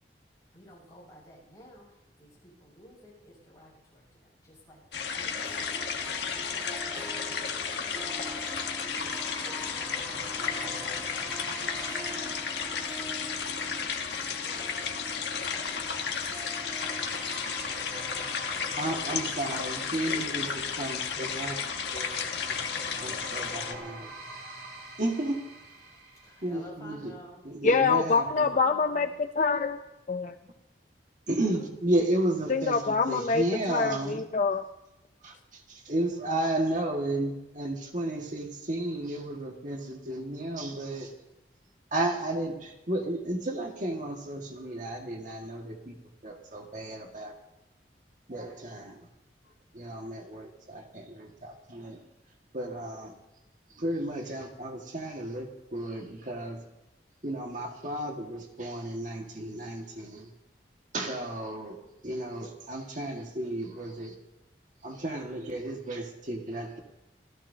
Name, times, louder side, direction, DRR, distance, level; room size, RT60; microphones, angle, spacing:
voice 1, 0.5-4.8 5.1-8.3 8.5-9.9 10.3-13.3 25.8-27.5 28.1-29.2 31.3-31.7, left 1 dB, 20° left, -4 dB, 7.8 m, -54 dB
sound 1, 4.9-23.7, left 6 dB, 75° left, 1.4 m, -33 dB
Harp, 5.3-21.8, right 1 dB, 10° right, 0.8 m, -46 dB
sound 2, 7.8-26.5, right 1 dB, 80° right, 3.0 m, -46 dB
voice 2, 18.8-21.6 21.9-22.6 23.0-24.1 25.0-25.4 26.4-27.1 27.4-28.5 31.3-34.2 35.2-41.1 41.9-46.0 46.2-47.3 48.3-49.0 49.7-52.0 52.5-53.1 53.8-56.6 57.2-60.3 60.9-61.8 62.0-64.1 64.8-66.8, right 1 dB, 45° right, 1 dB, 1.8 m, -33 dB
voice 3, 27.6-29.8 30.1-30.3 32.5-33.4 33.7-34.7, left 4 dB, 45° left, 7 dB, 0.5 m, -25 dB
25.5 x 16.5 x 2.8 m, 0.95 s
head